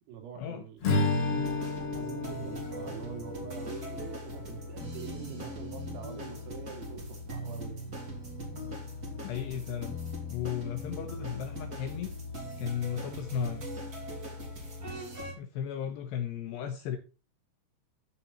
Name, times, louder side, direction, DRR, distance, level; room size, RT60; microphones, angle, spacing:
voice 1, 0.1-0.8 1.9-7.0 7.3-7.8, right 7 dB, 80° right, 3 dB, 5.1 m, -44 dB
Strum, 0.8-5.2, left 3 dB, 45° left, 2.2 m, -32 dB
sound 1, 1.4-15.3, left 1 dB, 25° right, 2.6 m, -40 dB
voice 2, 9.2-10.0 10.3-12.1 12.6-13.6 15.4-17.0, left 9 dB, 75° left, 7 dB, 2.6 m, -35 dB
14.0 x 7.1 x 4.3 m, 0.33 s
omnidirectional pair, 6.0 m